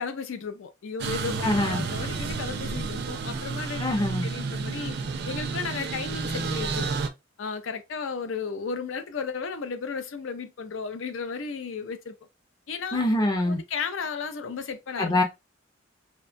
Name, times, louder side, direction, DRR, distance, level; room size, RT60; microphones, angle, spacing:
voice 1, 0.0-5.0 5.3-7.0 7.4-12.2 12.7-13.0 13.4-15.2, left 5 dB, 70° left, 0.5 m, -34 dB
sound 1, 1.0-7.1, right 4 dB, 55° right, 0.4 m, -31 dB
voice 2, 1.4-1.8 3.8-4.3 12.9-13.6 15.0-15.2, left 1 dB, 20° left, 0.5 m, -24 dB
2.8 x 2.2 x 2.5 m
head